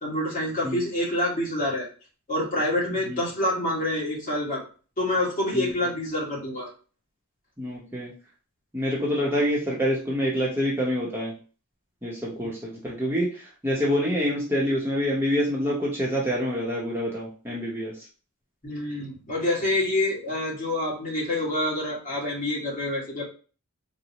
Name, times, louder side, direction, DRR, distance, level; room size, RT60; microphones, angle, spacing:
voice 1, 0.0-1.9 2.3-4.6 5.0-6.7 18.6-23.2, left 1 dB, 40° left, -5 dB, 1.5 m, -27 dB
voice 2, 7.6-8.1 8.7-11.3 12.0-17.9, equal, 10° right, -5 dB, 0.7 m, -26 dB
4.0 x 2.0 x 2.7 m, 0.37 s
head